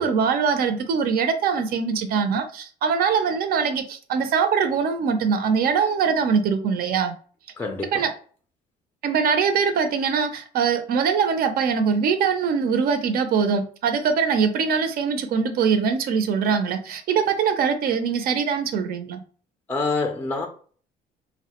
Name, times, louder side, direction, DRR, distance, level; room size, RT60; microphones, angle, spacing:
voice 1, 0.0-7.1 7.9-8.1 9.0-19.2, right 6 dB, 65° right, 0.5 m, -22 dB
voice 2, 7.6-8.0 19.7-20.5, left 3 dB, 10° left, 0.4 m, -26 dB
3.1 x 2.1 x 2.9 m
cardioid pair, 110°, 17 cm